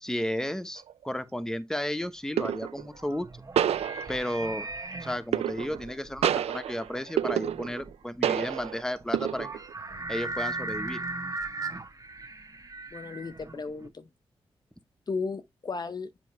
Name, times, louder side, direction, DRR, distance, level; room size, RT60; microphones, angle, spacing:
voice 1, 0.0-3.3 4.1-4.6 5.0-9.6 10.1-11.0, left 1 dB, 5° left, 0.9 m, -33 dB
sound 1, 0.8-1.0 2.4-2.9 3.6-4.5 5.3-5.9 6.2-7.9 8.2-8.8 9.1-9.7, right 10 dB, 80° right, 0.4 m, -29 dB
sound 2, 2.6-13.9, right 2 dB, 35° right, 1.3 m, -38 dB
voice 2, 12.9-14.1 15.1-16.1, left 4 dB, 40° left, 0.6 m, -35 dB
7.5 x 4.6 x 3.1 m
cardioid pair, 60°, 10 cm